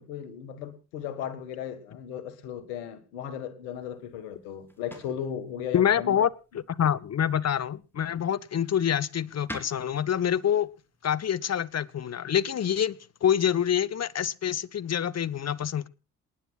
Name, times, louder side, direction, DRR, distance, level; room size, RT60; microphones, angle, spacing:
voice 1, 0.0-6.2, left 9 dB, 75° left, 1.8 m, -36 dB
sound 1, 3.7-12.9, equal, 5° left, 3.5 m, -50 dB
voice 2, 5.7-6.3 6.5-10.7 11.0-15.9, left 9 dB, 35° left, 0.9 m, -26 dB
27.5 x 10.0 x 2.4 m
figure-of-eight pair, 40°, 45 cm